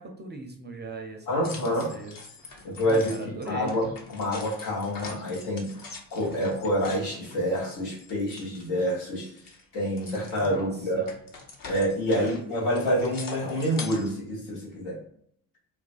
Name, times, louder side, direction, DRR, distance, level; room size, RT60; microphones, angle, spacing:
voice 1, 0.0-2.2 2.4-3.7 10.4-11.1 12.1-12.3, right 3 dB, 25° right, 3 dB, 0.4 m, -39 dB
voice 2, 1.3-1.9 2.6-3.1 3.4-3.8 4.1-5.7 6.1-9.3 9.7-11.0 11.6-15.0, equal, 85° left, -5 dB, 1.0 m, -27 dB
sound 1, 1.4-9.0 9.3-14.1, left 3 dB, 45° left, 0.7 m, -44 dB
2.4 x 2.2 x 2.4 m, 0.66 s
hypercardioid pair, 40°, 50 cm